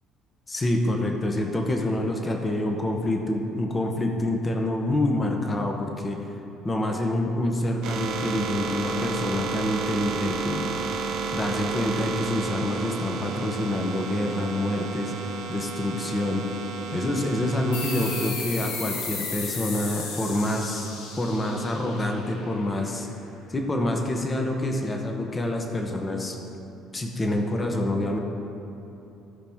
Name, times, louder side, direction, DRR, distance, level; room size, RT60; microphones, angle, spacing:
voice 1, 0.5-6.2 6.6-10.8 11.3-15.1 15.5-16.5 16.9-23.1 23.5-26.3 26.9-28.2, left 1 dB, 15° left, 2 dB, 0.8 m, -27 dB
sound 1, 7.8-18.3, right 5 dB, 60° right, 0.9 m, -32 dB
sound 2, 17.7-22.9, left 4 dB, 85° left, 1.5 m, -35 dB
16.5 x 5.7 x 3.6 m, 3.0 s
cardioid pair, 165°, 0 cm